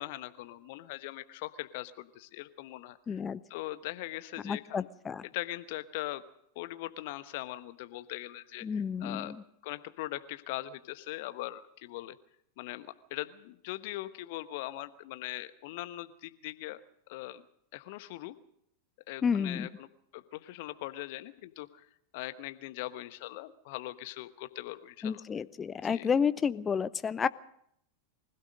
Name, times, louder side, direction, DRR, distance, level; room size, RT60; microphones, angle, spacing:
voice 1, 0.0-3.2 3.5-4.9 5.2-6.2 6.5-9.3 9.6-12.2 12.6-16.8 17.1-17.4 17.7-18.3 19.1-19.9 20.1-21.9 22.1-25.2 25.8-26.1, left 16 dB, 50° left, 13 dB, 1.1 m, -41 dB
voice 2, 3.1-3.4 4.4-5.2 8.6-9.4 19.2-19.7 25.0-27.3, left 6 dB, 20° left, 16 dB, 0.7 m, -30 dB
24.5 x 16.0 x 6.5 m, 0.73 s
figure-of-eight pair, 90°, 0 cm